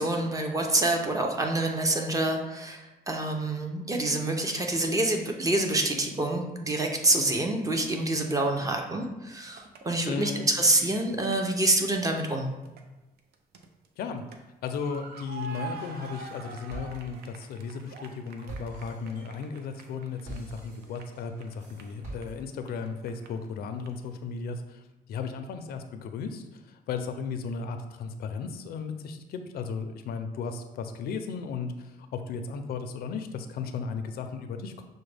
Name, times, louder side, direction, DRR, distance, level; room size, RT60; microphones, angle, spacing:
voice 1, 0.0-12.5, right 2 dB, 20° right, 2 dB, 0.5 m, -27 dB
sound 1, 9.5-9.8 10.3-11.8 12.2-12.8 13.2-14.4 14.7-23.5 23.8-23.9, right 4 dB, 75° right, 0.5 m, -45 dB
voice 2, 10.1-10.4 14.0-14.2 14.6-24.8 25.1-34.8, left 5 dB, 75° left, 7 dB, 0.4 m, -35 dB
sound 2, 15.8-16.4 16.7-22.7, right 1 dB, 50° right, 1.4 m, -46 dB
6.0 x 2.1 x 3.3 m, 1.0 s
cardioid pair, 115°, 16 cm